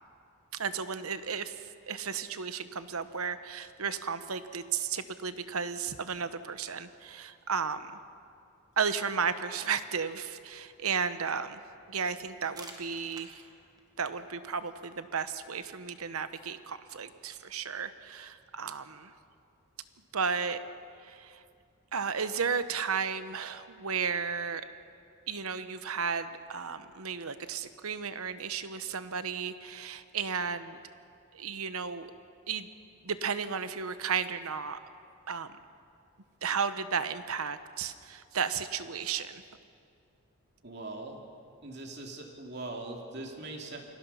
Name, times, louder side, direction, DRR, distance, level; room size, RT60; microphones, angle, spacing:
voice 1, 0.5-7.9 8.8-11.6 11.9-13.4 14.0-19.1 20.1-20.6 21.0-21.4 21.9-24.6 25.3-30.8 31.3-32.1 32.5-32.7 33.0-34.8 35.3-35.5 36.4-39.4, right 6 dB, 90° right, 11 dB, 1.0 m, -34 dB
sound 1, 12.2-17.8, right 2 dB, 20° right, 1.7 m, -55 dB
voice 2, 40.6-41.2 41.6-43.9, right 2 dB, 50° right, 1 dB, 2.6 m, -41 dB
28.0 x 19.0 x 5.6 m, 2.4 s
head